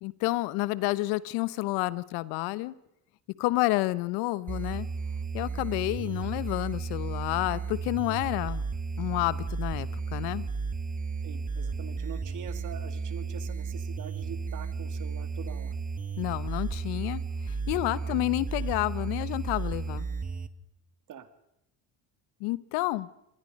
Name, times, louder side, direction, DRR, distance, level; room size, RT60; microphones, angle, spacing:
voice 1, 0.0-2.7 3.4-4.9 5.3-8.6 9.0-10.5 16.2-20.1 22.4-23.1, left 19 dB, 85° left, 19 dB, 1.0 m, -30 dB
sound 1, 4.5-20.5, right 5 dB, 20° right, 1.2 m, -34 dB
voice 2, 11.2-15.8 17.9-18.2 21.1-21.3, right 8 dB, 50° right, 11 dB, 2.3 m, -44 dB
27.0 x 20.5 x 5.3 m, 0.85 s
cardioid pair, 105°, 39 cm